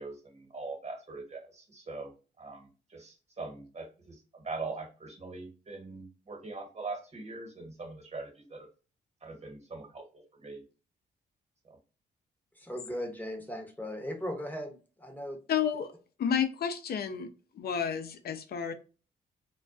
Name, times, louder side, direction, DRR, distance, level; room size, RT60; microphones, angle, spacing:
voice 1, 0.0-2.1 2.4-8.7 9.2-10.6 11.6-11.8, right 3 dB, 35° right, 1.2 m, -42 dB
voice 2, 12.6-15.4, equal, 10° left, 0.8 m, -38 dB
voice 3, 15.5-15.9 16.2-17.3 17.5-18.7, left 7 dB, 55° left, 0.5 m, -31 dB
2.3 x 2.2 x 2.4 m
supercardioid pair, 50°, 19 cm